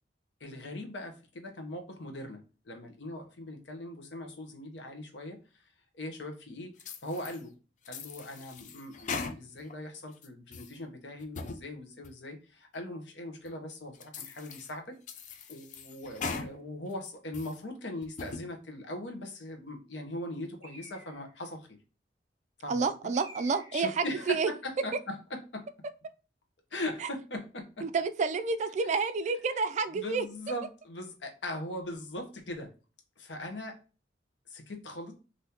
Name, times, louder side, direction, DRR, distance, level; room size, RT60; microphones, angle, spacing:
voice 1, 0.4-5.4 5.9-6.7 7.0-7.6 7.9-15.0 15.5-21.8 22.6-22.9 23.7-25.6 26.7-27.9 29.9-32.7 33.2-33.8 34.5-35.1, left 1 dB, 85° left, 3 dB, 0.8 m, -40 dB
sound 1, 6.8-7.4 7.8-9.7 10.1-10.7 11.2-11.6 12.0-12.1 12.7-12.8 13.5-13.6 14.0-14.7 15.1-16.5 16.9-17.6 18.0-18.4, left 4 dB, 45° left, 0.4 m, -40 dB
Bird, 20.6-21.5 23.1-24.1, equal, 15° right, 1.1 m, -51 dB
voice 2, 22.7-24.5 27.0-27.1 27.8-30.3, right 4 dB, 40° right, 10 dB, 0.3 m, -29 dB
3.5 x 2.6 x 2.8 m, 0.34 s
head